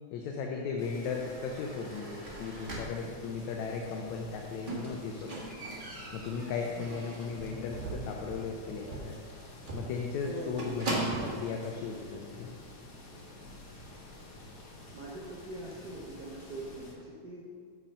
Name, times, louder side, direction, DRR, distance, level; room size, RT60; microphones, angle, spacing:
voice 1, 0.1-5.4 6.1-9.2 9.7-12.5, left 5 dB, 80° left, 1 dB, 2.0 m, -36 dB
sound 1, 0.8-16.9, left 2 dB, 55° left, 1.1 m, -50 dB
sound 2, 1.0-3.4 4.0-4.1 6.1-6.4 6.9-9.9 10.3-10.4 10.6-11.3, right 2 dB, 30° right, 1.2 m, -44 dB
Squeak, 4.7-7.4 7.8-8.2 8.4-8.5 8.9-9.0 9.3-9.4 9.7-11.5 12.3-12.4, right 2 dB, 55° right, 0.5 m, -38 dB
voice 2, 10.2-10.8 14.9-17.5, right 2 dB, 80° right, -5 dB, 0.8 m, -42 dB
7.5 x 6.3 x 5.5 m, 2.2 s
omnidirectional pair, 3.3 m